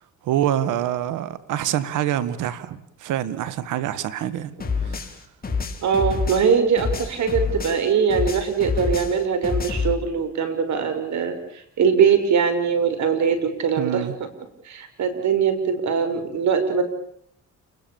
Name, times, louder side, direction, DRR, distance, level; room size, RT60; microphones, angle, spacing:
voice 1, 0.2-4.5 4.9-5.0 13.8-14.1, right 11 dB, 90° right, 1.9 m, -26 dB
sound 1, 4.6-7.8 8.1-9.9, left 5 dB, 30° left, 4.9 m, -27 dB
voice 2, 5.8-14.3 14.6-16.8, right 6 dB, 65° right, 6.2 m, -22 dB
29.5 x 22.0 x 7.2 m
cardioid pair, 90°, 30 cm